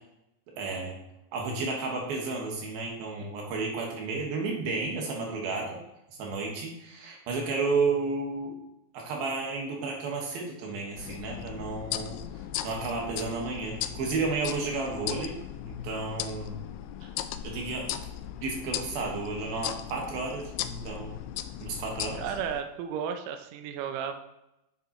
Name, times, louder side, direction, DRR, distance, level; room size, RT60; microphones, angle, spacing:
voice 1, 0.6-1.0 1.3-5.8 6.2-8.6 8.9-12.2 12.6-15.4 15.6-16.7 17.0-17.1 17.4-18.0 18.4-21.1 21.6-22.2, right 3 dB, 70° right, -1 dB, 3.3 m, -32 dB
sound 1, 11.0-22.6, left 11 dB, 85° left, 2.6 m, -37 dB
voice 2, 22.2-24.1, right 8 dB, 90° right, 6 dB, 1.8 m, -33 dB
8.6 x 7.6 x 3.1 m, 0.87 s
omnidirectional pair, 4.7 m